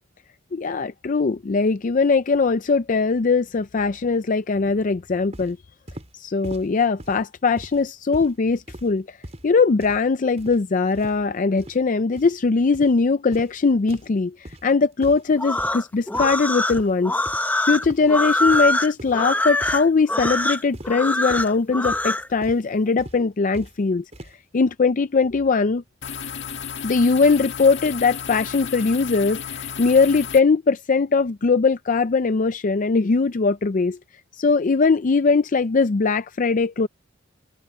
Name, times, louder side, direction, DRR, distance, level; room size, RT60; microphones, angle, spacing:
voice 1, 0.5-5.6 6.1-9.2 9.4-17.2 17.7-24.0 24.5-25.8 26.8-34.0 34.3-36.9, left 4 dB, 40° left, 0.4 m, -20 dB
sound 1, 5.3-5.5 5.9-6.1 6.4-6.7 7.0-7.2 7.6-7.8 8.1-8.3 8.7-8.9 9.2-9.5 9.8-10.0 10.4-10.6 10.9-11.2 11.6-11.8 12.2-12.3 12.7-12.9 13.3-13.5 13.9-14.1 14.4-14.6 15.0-15.3 15.6-15.8 16.1-16.4 16.7-16.9 17.3-17.4 17.8-18.1 18.5-18.7 19.0-19.2 19.6-19.8 20.2-20.4 20.7-20.9 21.3-21.5 21.8-22.1 22.4-22.6 23.0-23.2 23.5-23.7 24.1-24.3, right 1 dB, 35° right, 4.9 m, -39 dB
sound 2, 15.3-22.3, left 1 dB, 10° left, 0.8 m, -23 dB
sound 3, 26.0-30.4, left 7 dB, 60° left, 1.7 m, -33 dB
open air
head